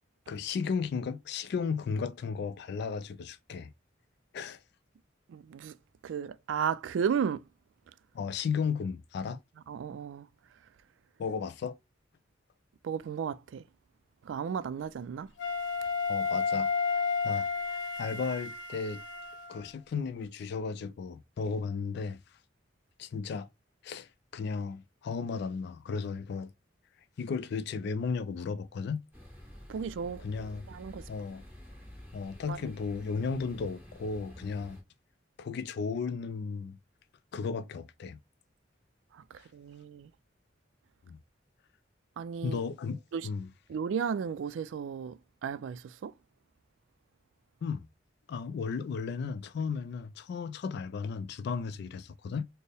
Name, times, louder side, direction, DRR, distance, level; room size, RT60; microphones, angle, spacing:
voice 1, 0.3-3.7 4.3-4.6 8.1-9.4 11.2-11.8 16.1-16.7 17.2-17.5 18.0-19.0 19.5-22.2 23.0-23.5 23.8-26.5 27.2-29.0 30.2-30.7 31.1-31.4 32.1-34.8 35.4-36.8 37.3-38.2 41.1-41.2 42.4-43.5 47.6-47.9 48.3-52.5, left 5 dB, 60° left, 0.3 m, -34 dB
voice 2, 5.3-5.8 6.0-7.4 9.7-10.3 12.8-13.6 14.2-15.3 29.7-30.2 30.7-31.1 32.5-32.6 39.1-40.1 42.2-42.7 43.1-43.3 43.7-46.1, right 7 dB, 80° right, 0.3 m, -34 dB
Wind instrument woodwind instrument, 15.4-19.7, left 5 dB, 80° left, 0.8 m, -32 dB
sound 1, 29.1-34.8, equal, 10° right, 1.5 m, -49 dB
4.3 x 2.0 x 3.3 m
head